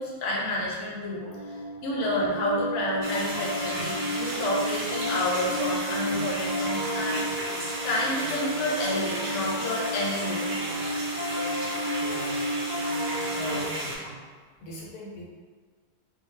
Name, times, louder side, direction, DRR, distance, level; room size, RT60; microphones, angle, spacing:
voice 1, 0.0-7.2 7.8-10.5 13.1-13.5, left 1 dB, 60° left, -4 dB, 0.9 m, -30 dB
Piano, 1.2-13.7, equal, 30° left, 0.4 m, -32 dB
sound 1, 3.0-14.0, right 1 dB, 60° right, 0.7 m, -34 dB
voice 2, 12.0-12.5 13.3-14.3 14.6-15.3, left 1 dB, 80° left, -4 dB, 1.1 m, -39 dB
2.6 x 2.3 x 3.1 m, 1.5 s
omnidirectional pair, 1.6 m